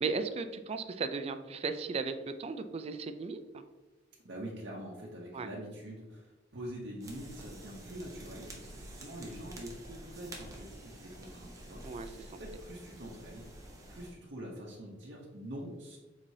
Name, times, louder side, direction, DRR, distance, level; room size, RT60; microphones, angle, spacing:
voice 1, 0.0-3.6 5.3-5.5 11.8-12.1, right 4 dB, 35° right, 9 dB, 0.3 m, -36 dB
voice 2, 4.2-13.4 13.9-16.0, equal, 65° right, -4 dB, 0.8 m, -45 dB
sound 1, 7.0-14.1, right 1 dB, 20° right, 0.8 m, -49 dB
4.6 x 3.9 x 2.7 m, 1.2 s
head